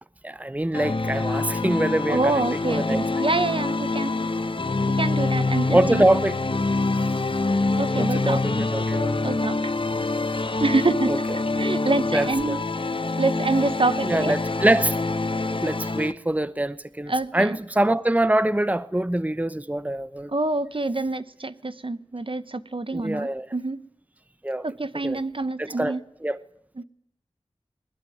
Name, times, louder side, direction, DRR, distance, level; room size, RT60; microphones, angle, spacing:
voice 1, 0.2-2.4 2.7-3.0 5.7-6.4 8.0-9.1 11.1-11.2 12.1-12.5 14.0-15.0 15.6-20.3 22.9-23.5 24.4-24.6 25.0-25.2 25.6-26.0 26.2-26.4, right 1 dB, 15° right, 0.9 m, -24 dB
sound 1, 0.7-16.1, left 3 dB, 55° left, 1.2 m, -25 dB
voice 2, 2.1-4.1 4.9-6.1 7.8-8.4 9.2-9.7 10.6-12.6 13.2-14.4 17.1-17.6 20.3-23.8 24.6-26.0 26.8-26.9, right 2 dB, 55° right, 1.2 m, -26 dB
21.0 x 20.0 x 9.4 m
wide cardioid pair, 45°, 11 cm